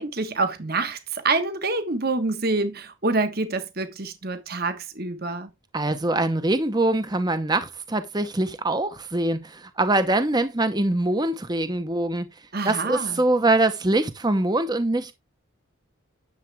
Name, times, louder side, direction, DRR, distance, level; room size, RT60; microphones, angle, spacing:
voice 1, 0.0-5.5 12.5-13.2, right 3 dB, 45° right, 1.4 m, -26 dB
voice 2, 5.7-12.2 12.6-15.1, right 2 dB, 20° right, 0.8 m, -23 dB
10.5 x 7.3 x 3.5 m
head